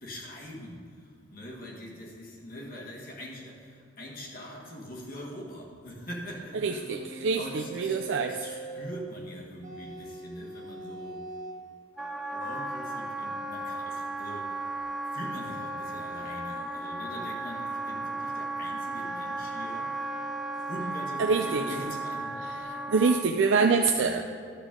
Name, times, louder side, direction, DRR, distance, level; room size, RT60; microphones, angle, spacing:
voice 1, 0.0-11.4 12.3-14.6 15.1-20.2 20.5-22.4 24.0-24.2, equal, 45° left, -2 dB, 1.6 m, -43 dB
voice 2, 6.6-8.3 21.2-21.6 22.9-24.2, right 4 dB, 75° right, 3 dB, 0.4 m, -25 dB
sound 1, 6.9-8.9 9.6-11.6 12.4-12.6, right 2 dB, 35° right, 1.3 m, -42 dB
Wind instrument woodwind instrument, 12.0-23.3, right 2 dB, 5° right, 0.4 m, -35 dB
11.5 x 7.0 x 3.7 m, 2.3 s
head